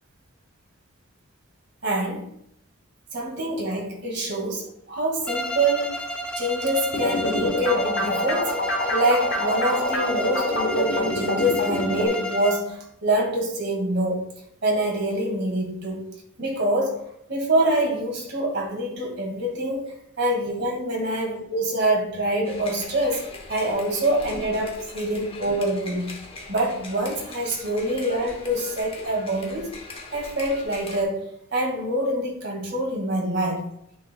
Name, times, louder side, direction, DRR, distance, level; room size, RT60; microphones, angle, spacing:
voice 1, 1.8-2.3 3.1-6.0 6.4-8.6 8.9-14.2 14.6-16.0 16.4-17.0 17.3-26.1 26.5-29.7 30.1-31.3 31.5-33.6, right 1 dB, 50° right, -1 dB, 1.9 m, -25 dB
Bowed string instrument, 5.3-12.7, equal, 5° left, 0.3 m, -32 dB
sound 1, 6.9-12.1, left 1 dB, 55° left, 1.1 m, -26 dB
sound 2, 22.4-31.0, left 3 dB, 25° left, 0.9 m, -41 dB
9.0 x 4.6 x 2.2 m, 0.72 s
head